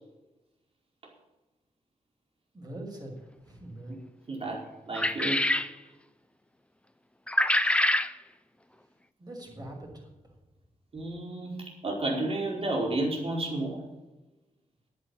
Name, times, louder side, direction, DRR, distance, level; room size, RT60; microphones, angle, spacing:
voice 1, 2.5-4.0 9.2-10.1, right 1 dB, 30° right, -1 dB, 6.4 m, -43 dB
voice 2, 4.3-5.5 10.9-11.6 11.8-13.8, right 2 dB, 50° right, -2 dB, 4.9 m, -31 dB
sound 1, 4.9-5.7 7.3-8.1, left 1 dB, 10° left, 0.7 m, -25 dB
10.5 x 10.0 x 8.7 m, 1.1 s
cardioid pair, 70°, 13 cm